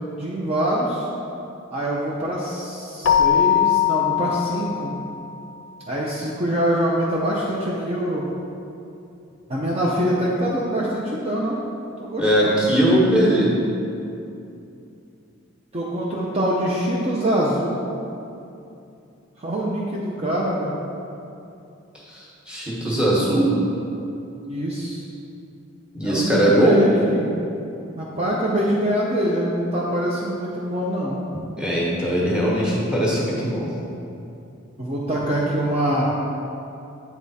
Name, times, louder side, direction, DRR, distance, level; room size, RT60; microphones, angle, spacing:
voice 1, 0.2-1.1 1.7-4.9 5.9-8.2 9.5-11.6 12.0-12.6 15.7-17.8 19.4-20.7 24.5-25.0 26.0-27.3 28.0-31.2 34.8-36.1, equal, 30° right, -5 dB, 0.6 m, -24 dB
Keyboard (musical), 3.0-5.5, left 9 dB, 65° left, 0.4 m, -21 dB
voice 2, 12.2-13.5 22.1-23.5 25.9-26.7 31.6-33.7, right 1 dB, 5° right, -6 dB, 1.2 m, -20 dB
8.2 x 3.6 x 4.1 m, 2.7 s
head